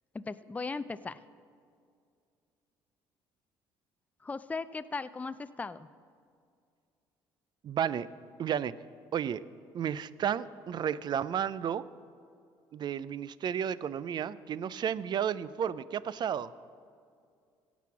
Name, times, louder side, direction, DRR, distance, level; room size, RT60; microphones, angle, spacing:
voice 1, 0.1-1.2 4.2-5.9, left 4 dB, 15° left, 13 dB, 0.4 m, -37 dB
voice 2, 7.6-8.1 8.4-8.7 9.1-9.4 9.7-11.8 12.7-16.5, right 8 dB, 45° right, 18 dB, 0.4 m, -32 dB
16.0 x 6.1 x 5.8 m, 2.3 s
supercardioid pair, 65°, 10 cm